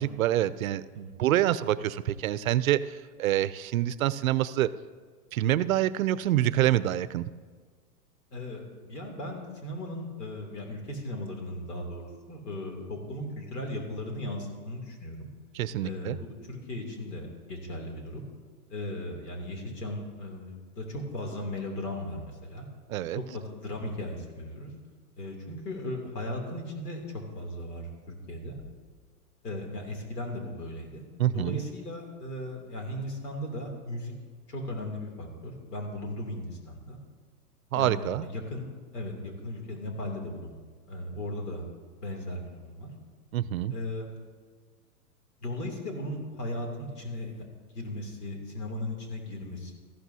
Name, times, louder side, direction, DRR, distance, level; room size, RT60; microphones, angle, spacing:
voice 1, 0.0-4.7 5.3-7.2 15.5-16.2 22.9-23.2 31.2-31.6 37.7-38.2 43.3-43.7, right 13 dB, 65° right, 16 dB, 0.5 m, -26 dB
voice 2, 8.3-15.3 15.8-18.2 18.7-22.7 23.1-24.7 25.2-28.6 29.4-31.0 31.3-34.1 34.5-37.0 37.7-38.7 38.9-40.5 40.9-41.6 42.0-42.9 43.7-44.1 45.4-47.4 47.7-49.7, left 1 dB, 90° left, 2 dB, 3.0 m, -37 dB
14.0 x 12.0 x 2.8 m, 1.5 s
hypercardioid pair, 150°, 46 cm